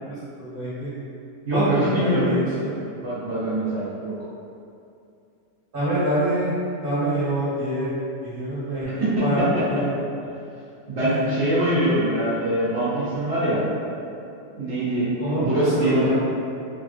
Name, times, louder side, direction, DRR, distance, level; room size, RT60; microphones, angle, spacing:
voice 1, 0.0-0.9 1.5-2.7 5.7-6.5 6.8-7.9 8.2-9.4 9.7-9.8 11.0-11.3 15.2-16.1, right 1 dB, 35° right, -12 dB, 1.4 m, -25 dB
voice 2, 1.4-2.4 2.9-4.1 9.0-9.2 10.9-13.6 14.5-16.1, right 1 dB, 60° right, -11 dB, 0.7 m, -23 dB
3.3 x 2.3 x 2.5 m, 2.6 s
omnidirectional pair, 1.9 m